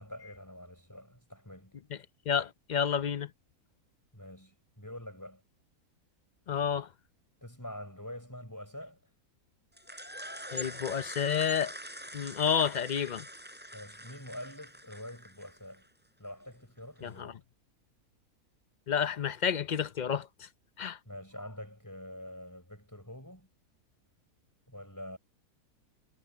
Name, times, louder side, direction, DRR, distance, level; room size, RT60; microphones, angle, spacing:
voice 1, 0.0-1.7 4.1-5.4 7.4-9.0 13.7-15.9 16.2-17.4 21.0-23.5 24.7-25.2, left 1 dB, 10° left, 6.3 m, -45 dB
voice 2, 2.3-3.3 6.5-6.9 10.5-11.7 12.1-13.2 17.0-17.3 18.9-20.5 20.8-21.0, left 8 dB, 60° left, 0.4 m, -30 dB
sound 1, 9.8-15.8, equal, 5° right, 4.5 m, -44 dB
omnidirectional pair, 1.6 m